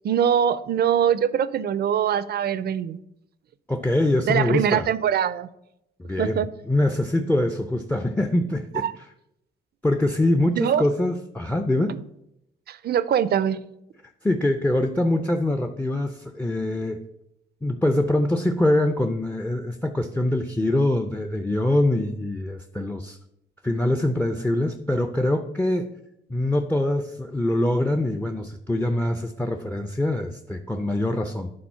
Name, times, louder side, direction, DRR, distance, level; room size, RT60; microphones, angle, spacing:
voice 1, 0.0-3.0 4.3-5.5 6.2-6.5 8.8-8.9 10.6-10.8 11.9-12.0 12.7-13.6, right 9 dB, 55° right, 16 dB, 0.5 m, -23 dB
voice 2, 3.7-4.9 6.0-8.9 9.8-11.9 14.2-17.0 17.6-23.2 23.6-25.9 26.3-31.5, left 1 dB, 10° left, 8 dB, 0.5 m, -24 dB
8.7 x 4.0 x 5.6 m, 0.82 s
cardioid pair, 90°, 20 cm